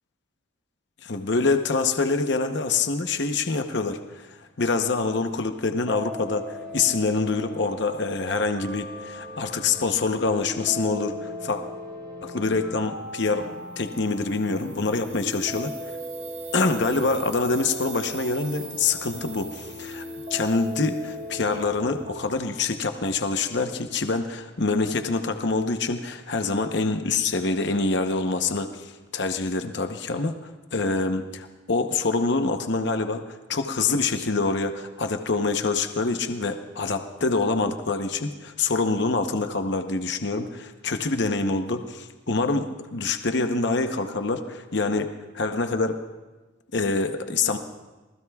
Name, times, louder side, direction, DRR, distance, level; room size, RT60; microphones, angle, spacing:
voice 1, 1.0-11.6 12.2-15.7 16.5-20.0 20.3-46.0 46.7-47.6, left 3 dB, 55° left, 7 dB, 0.8 m, -26 dB
sound 1, 5.8-22.4, left 1 dB, 40° right, 6.3 m, -38 dB
sound 2, 13.7-21.6, right 9 dB, 90° right, 1.8 m, -45 dB
27.0 x 19.5 x 2.3 m, 1.2 s
head